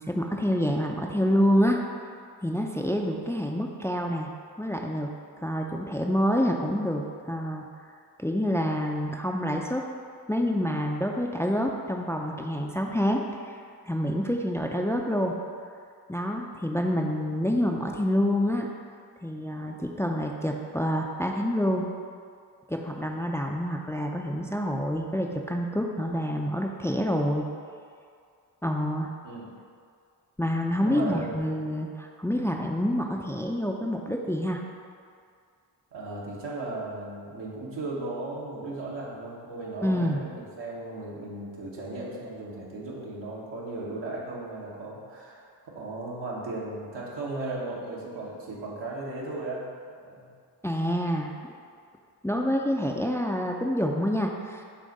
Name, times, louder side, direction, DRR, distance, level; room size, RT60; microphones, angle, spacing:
voice 1, 0.0-1.8 2.4-4.3 4.6-5.1 5.4-7.7 8.2-9.8 10.3-13.6 13.9-15.3 16.1-18.7 19.2-21.9 22.7-27.5 28.6-29.1 30.4-34.6 39.8-40.2 50.6-51.5 52.2-54.6, equal, 5° left, 1 dB, 0.5 m, -27 dB
voice 2, 30.8-31.4 35.9-49.7 50.0-50.3, right 2 dB, 75° right, -4 dB, 1.4 m, -36 dB
7.3 x 2.5 x 5.3 m, 2.2 s
cardioid pair, 50°, 43 cm